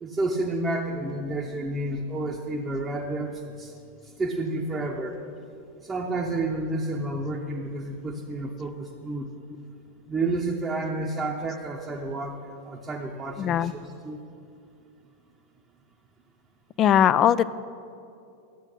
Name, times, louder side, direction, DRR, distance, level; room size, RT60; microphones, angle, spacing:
voice 1, 0.0-3.7 4.2-5.2 5.8-9.3 10.1-13.7 14.0-14.2, right 2 dB, 15° right, -1 dB, 0.8 m, -30 dB
voice 2, 13.4-13.7 16.8-17.6, left 10 dB, 30° left, 17 dB, 0.3 m, -20 dB
12.0 x 8.9 x 5.6 m, 2.6 s
figure-of-eight pair, 90°, 0 cm